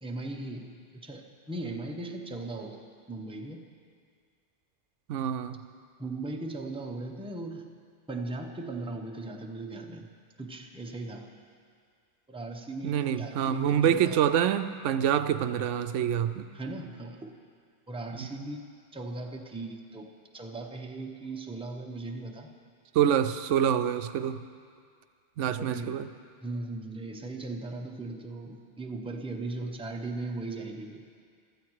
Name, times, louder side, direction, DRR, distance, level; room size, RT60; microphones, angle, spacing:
voice 1, 0.0-2.8 3.1-3.6 6.0-7.7 8.1-10.1 10.4-11.3 12.3-14.2 16.5-17.3 17.9-18.6 18.9-22.5 25.5-26.0 26.4-31.2, right 2 dB, 5° right, 2 dB, 0.8 m, -38 dB
voice 2, 5.1-5.6 12.8-16.5 18.1-18.3 22.9-24.4 25.4-26.1, right 9 dB, 90° right, 11 dB, 0.9 m, -26 dB
16.5 x 13.0 x 4.8 m, 2.1 s
omnidirectional pair, 1.2 m